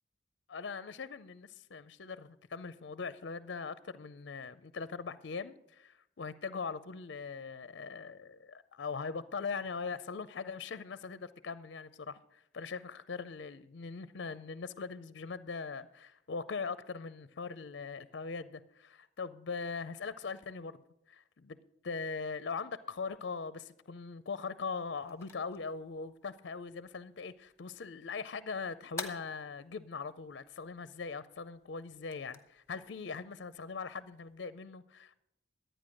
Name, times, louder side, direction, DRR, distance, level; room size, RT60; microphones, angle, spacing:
voice 1, 0.5-20.8 21.1-21.6 21.8-35.1, left 5 dB, 60° left, 15 dB, 0.5 m, -41 dB
sound 1, 24.6-34.4, left 4 dB, 15° left, 1.0 m, -52 dB
11.5 x 9.1 x 6.3 m, 0.78 s
head